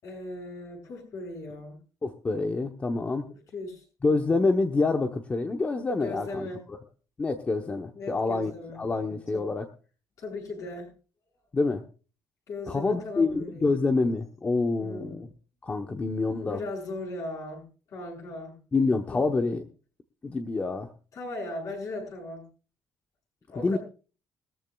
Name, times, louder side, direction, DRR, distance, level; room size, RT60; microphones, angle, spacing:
voice 1, 0.0-1.8 3.5-3.8 6.0-6.6 7.9-8.8 9.3-9.4 10.2-10.9 12.5-13.7 14.8-15.2 16.4-18.6 19.1-19.2 21.1-22.5 23.5-23.8, left 2 dB, 50° left, 1 dB, 6.7 m, -37 dB
voice 2, 2.0-3.3 4.0-6.5 7.2-9.6 11.5-11.8 12.7-15.3 15.6-16.6 18.7-19.6 20.2-20.9 23.6-23.8, left 3 dB, 20° left, 5 dB, 0.9 m, -27 dB
21.5 x 13.5 x 2.3 m, 0.35 s
cardioid pair, 170°, 7 cm